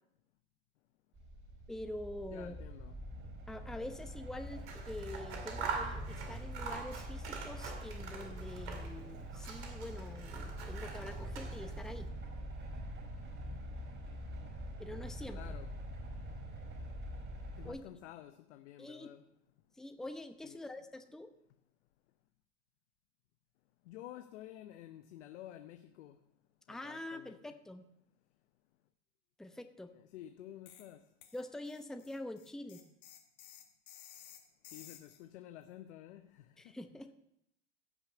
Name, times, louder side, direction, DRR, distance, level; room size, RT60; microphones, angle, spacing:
sound 1, 1.1-17.7, equal, 35° right, 5.1 m, -44 dB
voice 1, 1.7-2.5 3.5-12.1 14.8-15.4 17.6-17.8 18.8-19.1 19.8-21.3 26.7-27.8 29.4-29.9 31.3-32.8 36.6-37.1, left 1 dB, ahead, 0.9 m, -45 dB
voice 2, 2.3-3.0 15.3-15.7 17.6-19.2 20.4-20.6 23.9-26.2 26.7-27.5 29.9-31.0 34.7-36.8, left 12 dB, 75° left, 0.9 m, -51 dB
Scissors, 4.5-9.0 9.3-11.9, right 5 dB, 75° right, 2.3 m, -44 dB
sound 2, 30.7-30.9 31.2-35.2, left 10 dB, 55° left, 1.9 m, -55 dB
16.0 x 5.7 x 6.8 m
hypercardioid pair, 85°, 35 cm